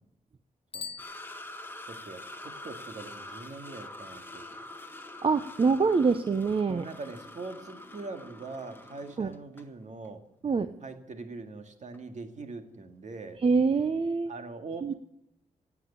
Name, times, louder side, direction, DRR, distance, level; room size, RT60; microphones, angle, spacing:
Bicycle bell, 0.7-2.0, left 6 dB, 45° left, 0.8 m, -44 dB
sound 1, 1.0-9.7 10.0-10.1 11.9-12.0, left 1 dB, 15° left, 1.5 m, -45 dB
voice 1, 1.8-4.6 6.7-10.2 10.8-13.4 14.3-14.9, right 3 dB, 60° right, 6 dB, 2.1 m, -42 dB
voice 2, 5.2-6.8 9.2-9.3 10.4-10.7 13.4-14.3 14.8-14.9, right 4 dB, 40° right, 10 dB, 0.8 m, -25 dB
17.0 x 8.4 x 8.3 m, 0.80 s
cardioid pair, 90°, 14 cm